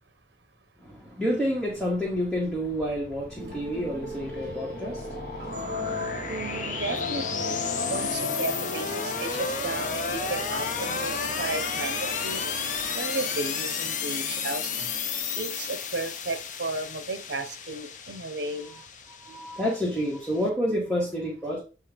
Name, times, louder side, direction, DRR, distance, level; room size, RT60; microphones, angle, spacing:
voice 1, 0.8-6.3 19.2-21.6, equal, ahead, 1.9 m, -29 dB
sound 1, 2.1-20.4, left 6 dB, 45° left, 0.7 m, -33 dB
sound 2, 3.3-16.3, equal, 50° right, 3.4 m, -37 dB
voice 2, 6.3-7.6 7.9-12.4 12.9-14.9 15.3-18.8, right 2 dB, 80° right, 1.0 m, -34 dB
8.1 x 3.0 x 5.3 m
head